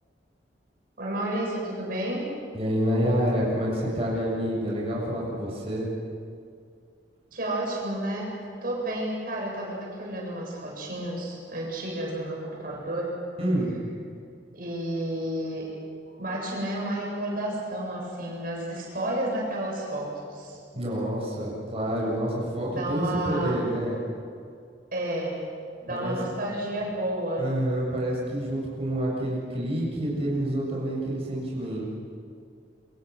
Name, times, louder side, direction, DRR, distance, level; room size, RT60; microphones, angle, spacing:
voice 1, 1.0-2.3 7.3-8.3 8.6-13.1 14.5-15.7 16.2-20.6 22.7-23.6 24.9-25.5 25.8-27.5, right 1 dB, 55° right, -2 dB, 7.5 m, -31 dB
voice 2, 2.5-5.9 13.4-13.7 20.7-24.0 25.9-26.2 27.4-31.8, equal, 35° right, -5 dB, 7.2 m, -28 dB
28.0 x 25.5 x 6.4 m, 2.3 s
head